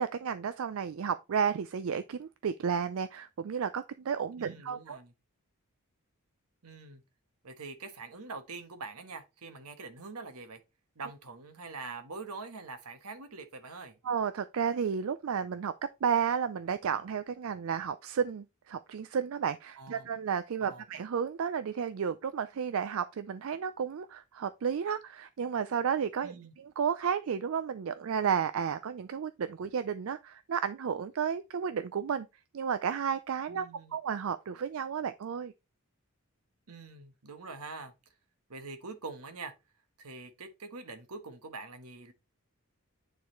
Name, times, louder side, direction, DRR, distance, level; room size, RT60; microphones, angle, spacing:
voice 1, 0.0-5.0 14.0-15.7 16.0-32.3 32.5-33.7 33.9-35.5, right 7 dB, 65° right, 0.4 m, -32 dB
voice 2, 4.3-5.1 6.6-7.0 7.4-10.6 10.9-14.0 19.8-20.1 20.6-20.8 26.2-26.5 33.5-33.9 36.7-37.9 38.5-39.5 40.0-42.1, right 3 dB, 85° right, 1.3 m, -44 dB
9.3 x 4.0 x 3.1 m
head